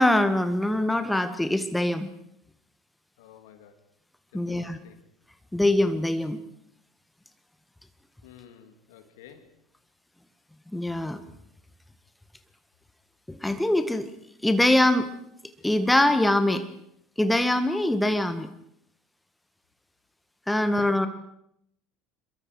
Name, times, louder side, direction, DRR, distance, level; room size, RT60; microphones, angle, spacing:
voice 1, 0.0-2.1 4.3-4.8 5.5-6.4 10.7-11.2 13.3-14.1 14.4-15.1 15.6-16.6 17.2-18.5 20.5-21.1, left 1 dB, 5° left, 10 dB, 1.6 m, -23 dB
voice 2, 3.2-3.8 4.3-5.0 8.2-9.5 20.7-21.1, left 9 dB, 60° left, 8 dB, 2.5 m, -50 dB
28.5 x 22.5 x 4.7 m, 0.73 s
figure-of-eight pair, 70°, 0 cm